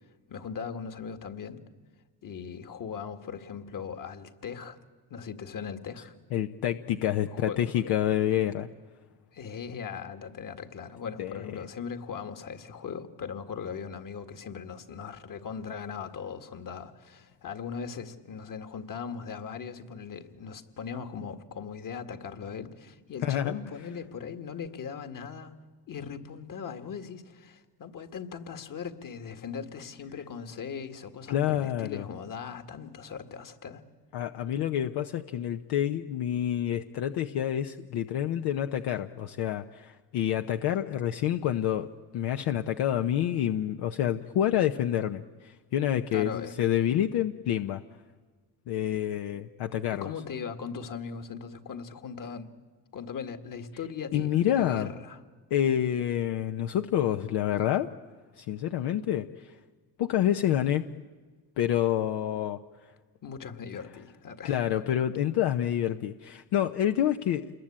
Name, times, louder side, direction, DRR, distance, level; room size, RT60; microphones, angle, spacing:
voice 1, 0.3-1.6 2.2-4.8 5.1-6.1 7.3-8.5 9.3-25.5 25.9-33.8 46.1-46.5 49.9-52.5 52.9-55.2 63.2-64.6, left 6 dB, 55° left, 8 dB, 2.1 m, -39 dB
voice 2, 6.3-8.7 11.2-11.5 23.2-23.5 31.3-32.0 34.1-47.8 48.7-50.1 54.1-54.9 55.5-57.9 58.4-59.5 60.0-60.9 61.6-62.6 64.4-67.5, left 11 dB, 80° left, 7 dB, 0.9 m, -28 dB
28.0 x 21.5 x 8.8 m, 1.4 s
cardioid pair, 90°, 39 cm